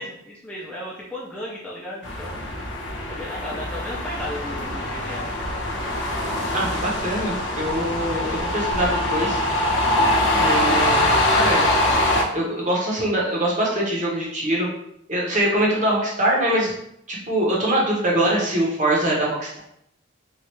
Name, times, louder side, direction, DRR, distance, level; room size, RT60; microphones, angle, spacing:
voice 1, 0.0-2.4 3.1-5.3, left 1 dB, 5° left, -7 dB, 0.5 m, -35 dB
sound 1, 2.0-12.2, left 1 dB, 70° left, 0.6 m, -23 dB
voice 2, 6.5-9.4 10.3-11.7 12.3-14.7 15.1-16.7 17.1-19.6, right 1 dB, 40° right, -4 dB, 0.8 m, -23 dB
3.1 x 2.4 x 3.0 m, 0.75 s
head